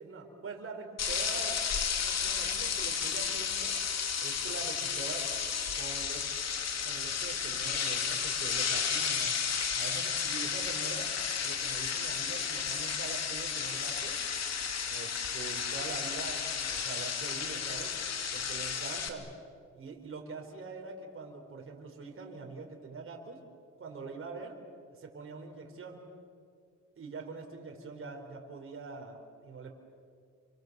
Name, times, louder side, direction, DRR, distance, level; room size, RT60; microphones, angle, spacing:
voice 1, 0.0-1.6 2.0-3.8 4.2-5.3 5.7-6.3 6.7-9.3 9.8-11.1 11.4-14.2 14.9-17.9 18.3-19.3 19.7-23.4 23.8-24.5 24.9-26.0 27.0-29.7, right 4 dB, 45° right, 1 dB, 4.5 m, -44 dB
sound 1, 1.0-19.1, left 7 dB, 60° left, 2.7 m, -33 dB
30.0 x 25.0 x 6.8 m, 2.3 s
cardioid pair, 90°, 30 cm